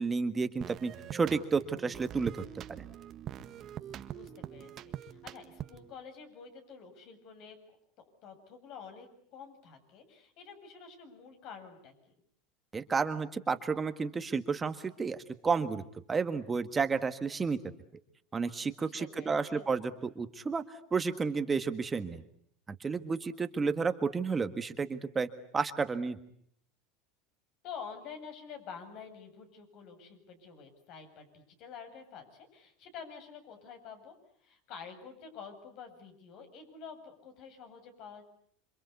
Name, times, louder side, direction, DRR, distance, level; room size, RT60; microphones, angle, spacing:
voice 1, 0.0-2.3 2.7-2.8 12.7-15.8 16.1-17.6 18.3-22.2 22.7-26.2, right 5 dB, 20° right, 9 dB, 1.6 m, -31 dB
sound 1, 0.6-5.9, right 10 dB, 40° right, 1.6 m, -44 dB
voice 2, 4.1-7.6 8.0-12.1 18.8-19.7 27.6-34.1 34.4-38.3, left 6 dB, 55° left, 7 dB, 7.9 m, -48 dB
27.5 x 26.0 x 8.3 m, 0.66 s
supercardioid pair, 110°, 0 cm